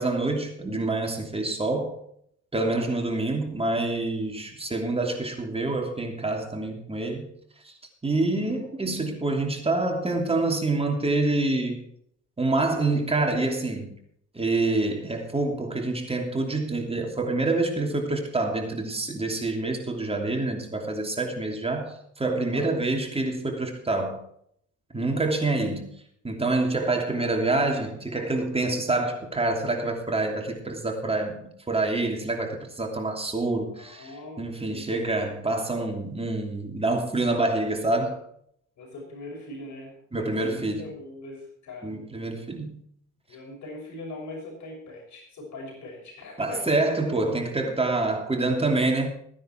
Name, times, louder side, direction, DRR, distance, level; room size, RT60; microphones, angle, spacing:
voice 1, 0.0-1.9 2.5-7.3 7.6-7.7 8.0-11.8 12.4-13.9 14.3-24.2 24.9-25.9 26.2-34.1 34.4-38.2 40.1-40.8 41.8-42.7 46.4-49.1, right 2 dB, 20° right, 2 dB, 2.9 m, -26 dB
voice 2, 2.6-2.9 8.3-8.7 22.5-22.8 24.9-25.2 33.7-34.9 38.8-42.1 43.3-46.8 47.6-47.7, left 2 dB, 70° left, 0 dB, 6.1 m, -41 dB
15.5 x 10.0 x 4.5 m, 0.67 s
cardioid pair, 90°, 30 cm